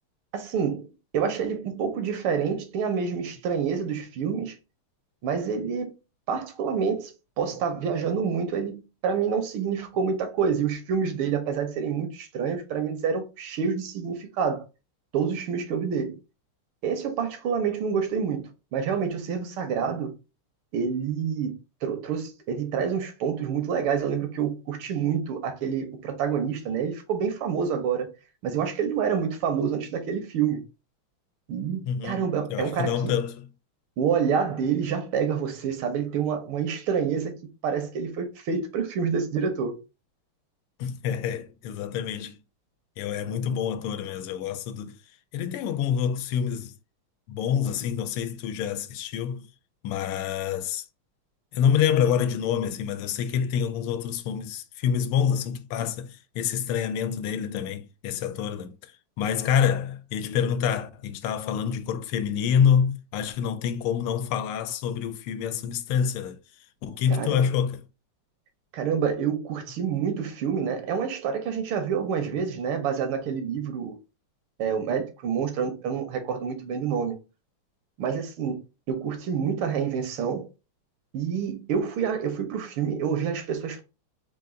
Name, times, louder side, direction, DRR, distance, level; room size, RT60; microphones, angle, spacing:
voice 1, 0.3-0.9 1.1-4.5 5.2-5.9 6.3-14.6 15.1-16.2 16.8-20.1 20.7-21.5 21.8-28.1 28.4-30.6 31.5-33.1 34.0-39.7 67.1-67.4 68.7-73.9 74.6-77.2 78.0-78.6 78.9-80.5 81.1-83.8, right 7 dB, 75° right, 1.6 m, -27 dB
voice 2, 31.9-32.2 32.5-33.5 40.8-42.4 43.0-45.0 45.3-46.7 47.3-49.5 49.8-50.8 51.5-58.9 59.2-66.4 66.8-67.8, left 8 dB, 85° left, 1.5 m, -27 dB
4.1 x 2.5 x 3.6 m
omnidirectional pair, 2.4 m